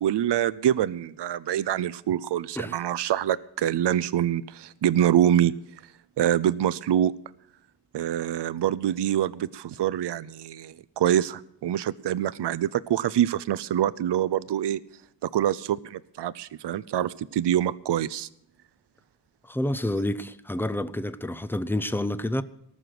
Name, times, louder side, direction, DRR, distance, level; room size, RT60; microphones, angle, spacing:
voice 1, 0.0-5.5 6.2-7.1 7.9-14.8 15.2-18.3, right 11 dB, 75° right, 0.5 m, -25 dB
voice 2, 19.5-22.4, left 1 dB, 5° left, 0.5 m, -28 dB
19.0 x 6.5 x 7.6 m
wide cardioid pair, 130°, 42 cm